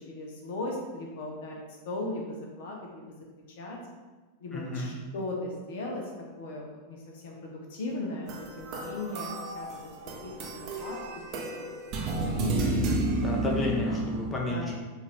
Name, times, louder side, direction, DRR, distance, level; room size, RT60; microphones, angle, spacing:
voice 1, 0.1-2.2 2.6-3.0 3.6-3.8 4.4-6.0 6.4-9.3 9.5-9.7 10.2-10.3 10.8-11.0 12.1-12.6 14.5-14.6, left 2 dB, 55° left, -1 dB, 0.8 m, -37 dB
voice 2, 4.5-4.9 13.2-14.8, left 2 dB, 20° left, -2 dB, 0.8 m, -32 dB
sound 1, 8.3-14.3, right 2 dB, 40° right, 0.6 m, -31 dB
5.1 x 2.6 x 3.3 m, 1.3 s
figure-of-eight pair, 90°, 0 cm